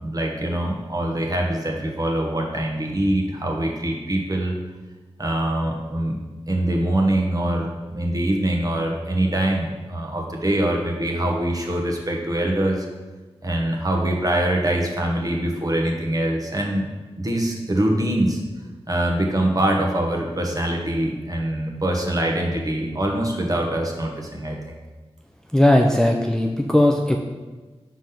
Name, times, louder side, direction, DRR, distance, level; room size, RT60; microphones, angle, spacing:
voice 1, 0.0-4.5 5.2-6.2 6.5-12.9 13.4-16.9 17.2-18.4 18.9-24.8, right 1 dB, 35° right, 0 dB, 1.2 m, -23 dB
voice 2, 25.5-27.2, left 1 dB, 5° left, 2 dB, 0.4 m, -17 dB
4.9 x 3.9 x 5.7 m, 1.3 s
wide cardioid pair, 60°, 11 cm